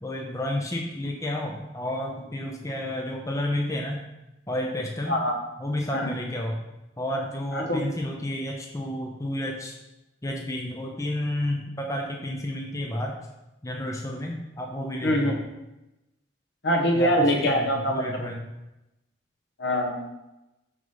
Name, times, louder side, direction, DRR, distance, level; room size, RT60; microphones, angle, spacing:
voice 1, 0.0-4.0 4.5-5.1 5.6-6.6 7.0-9.8 10.2-13.1 13.6-15.3 17.0-17.1 17.4-18.4, left 1 dB, 15° left, 0 dB, 0.7 m, -31 dB
voice 2, 5.1-5.4 5.9-6.1 7.5-7.8 15.0-15.4 16.6-18.0 19.6-20.1, equal, 65° left, 1 dB, 1.4 m, -24 dB
6.2 x 5.4 x 5.6 m, 0.96 s
head